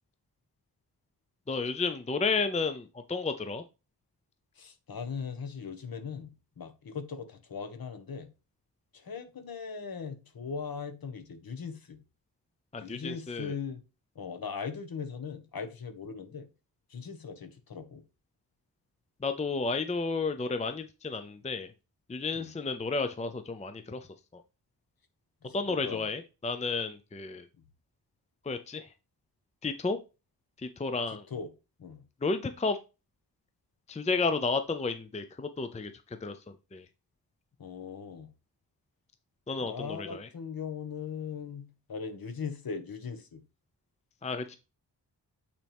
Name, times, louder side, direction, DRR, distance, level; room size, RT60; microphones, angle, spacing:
voice 1, 1.5-3.6 12.7-13.5 19.2-21.7 22.1-24.0 24.3-24.4 25.5-27.4 28.5-28.9 29.6-30.0 30.6-31.2 32.2-32.8 33.9-35.9 36.2-36.3 36.7-36.8 39.5-40.3 44.2-44.6, left 4 dB, 15° left, 0.6 m, -32 dB
voice 2, 4.6-8.3 8.9-12.0 12.8-13.8 14.1-16.5 16.9-18.0 22.3-22.5 25.4-26.1 31.1-31.5 31.8-32.0 37.6-38.3 39.6-43.4, left 6 dB, 55° left, 1.4 m, -39 dB
8.7 x 4.4 x 3.5 m
wide cardioid pair, 125°, 43 cm